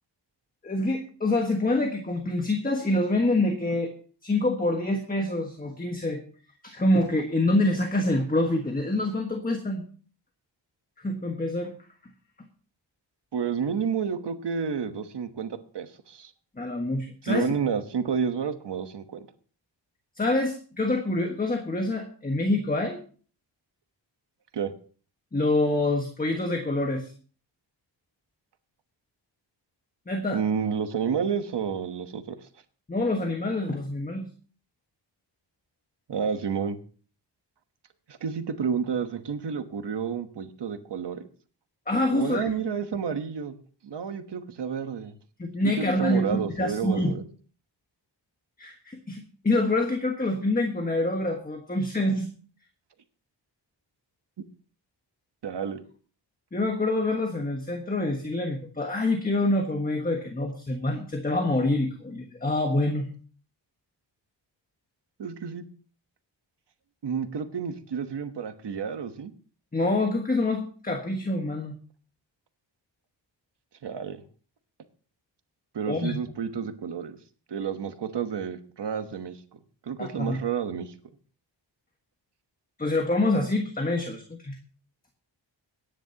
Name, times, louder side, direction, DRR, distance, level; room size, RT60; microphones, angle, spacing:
voice 1, 0.6-3.9 4.2-6.2 6.6-9.8 11.0-11.7 16.6-17.5 20.2-23.0 25.3-27.1 30.1-30.4 32.9-34.3 41.9-42.5 45.4-47.2 48.6-52.3 56.5-63.1 69.7-71.7 75.9-76.2 80.0-80.4 82.8-84.6, left 2 dB, 20° left, 3 dB, 1.4 m, -26 dB
voice 2, 13.3-16.3 17.3-19.3 24.5-24.7 30.3-32.5 36.1-36.8 38.1-41.2 42.1-43.6 43.8-45.2 45.6-47.2 55.4-55.8 65.2-65.7 67.0-69.3 73.8-74.2 75.7-77.2 77.5-80.9, right 7 dB, 65° right, 8 dB, 1.2 m, -30 dB
23.0 x 10.0 x 2.9 m, 0.41 s
wide cardioid pair, 155°, 45 cm